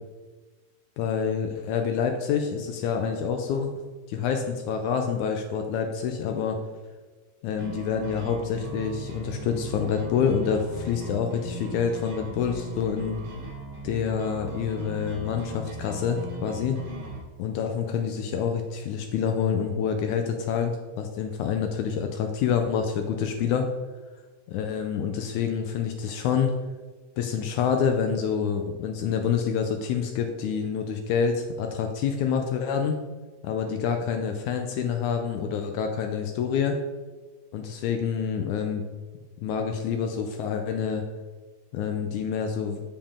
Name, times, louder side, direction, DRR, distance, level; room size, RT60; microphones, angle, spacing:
voice 1, 1.0-3.7 4.1-6.6 7.4-13.2 13.8-16.8 17.4-23.7 24.5-26.5 27.2-33.0 33.4-36.8 37.5-38.9 39.4-41.0 41.7-42.8, left 7 dB, 85° left, 5 dB, 1.7 m, -27 dB
sound 1, 7.6-17.2, right 2 dB, 45° right, 2.2 m, -39 dB
7.4 x 6.9 x 3.6 m, 1.3 s
omnidirectional pair, 4.0 m